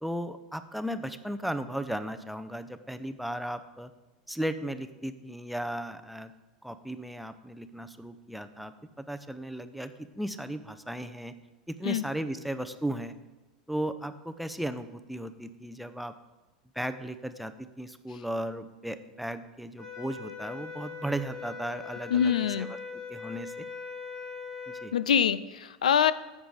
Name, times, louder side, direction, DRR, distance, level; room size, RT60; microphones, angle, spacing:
voice 1, 0.0-3.9 4.3-6.3 6.6-11.3 11.7-13.2 13.7-16.1 16.7-23.7 24.7-24.9, right 1 dB, ahead, 10 dB, 0.7 m, -36 dB
sound 1, 19.8-24.9, left 5 dB, 25° left, 3.8 m, -41 dB
voice 2, 22.1-22.7 24.9-26.1, left 8 dB, 85° left, 17 dB, 0.4 m, -24 dB
10.5 x 7.3 x 4.9 m, 1.1 s
hypercardioid pair, 95°, 4 cm